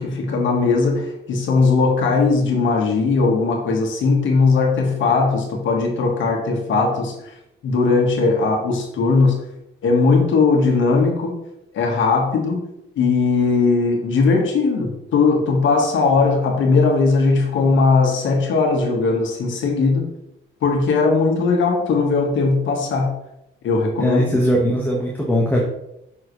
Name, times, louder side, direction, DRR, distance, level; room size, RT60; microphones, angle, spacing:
voice 1, 0.0-7.1 7.6-9.3 9.8-11.3 11.7-12.6 12.9-20.0 20.6-23.1 23.6-24.4, left 4 dB, 75° left, 1 dB, 1.7 m, -18 dB
voice 2, 24.0-25.6, equal, 10° left, -3 dB, 1.6 m, -19 dB
7.6 x 6.1 x 3.3 m, 0.82 s
cardioid pair, 90°, 20 cm